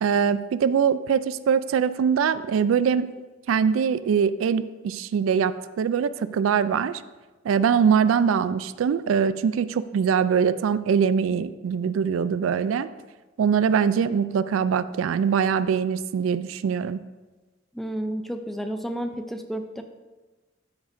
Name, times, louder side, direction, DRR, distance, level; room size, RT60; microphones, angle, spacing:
voice 1, 0.0-3.1 3.5-7.0 7.4-12.9 13.4-17.0, right 7 dB, 80° right, 14 dB, 0.3 m, -23 dB
voice 2, 17.7-19.8, right 1 dB, ahead, 6 dB, 0.4 m, -31 dB
13.0 x 5.1 x 2.6 m, 1.2 s
head